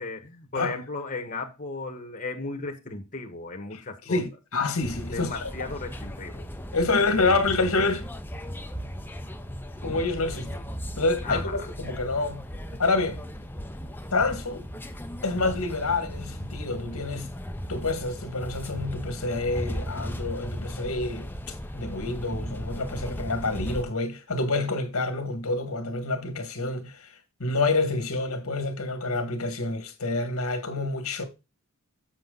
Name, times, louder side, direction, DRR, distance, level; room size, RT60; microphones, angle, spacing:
voice 1, 0.0-4.2 5.1-6.4 11.2-11.7, left 3 dB, 35° left, 1.3 m, -35 dB
voice 2, 3.7-5.5 6.7-8.1 9.8-10.6 11.0-12.5 12.8-13.2 14.1-14.6 15.2-17.3 17.7-27.1 27.4-31.2, left 3 dB, 75° left, 1.9 m, -28 dB
sound 1, 4.8-23.8, equal, 10° left, 0.8 m, -36 dB
7.6 x 6.6 x 3.9 m
head